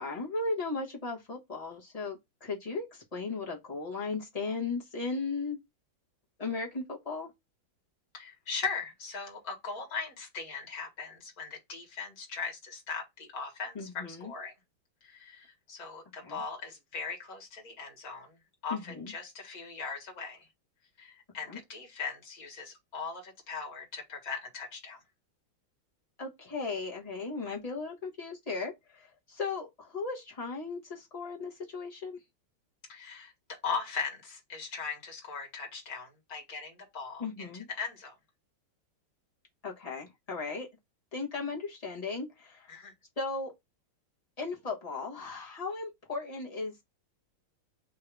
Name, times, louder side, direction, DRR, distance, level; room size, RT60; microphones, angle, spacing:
voice 1, 0.0-5.6 6.4-7.3 13.7-14.3 16.2-16.4 18.7-19.1 21.5-21.6 26.2-32.2 37.2-37.7 39.6-40.7 41.1-42.7 43.2-43.5 44.4-46.7, left 4 dB, 25° left, 1.0 m, -36 dB
voice 2, 8.1-14.5 15.0-18.4 18.6-20.5 21.0-25.0 32.9-38.2 42.7-42.9, left 5 dB, 45° left, 2.0 m, -39 dB
3.8 x 2.8 x 4.6 m
omnidirectional pair, 2.3 m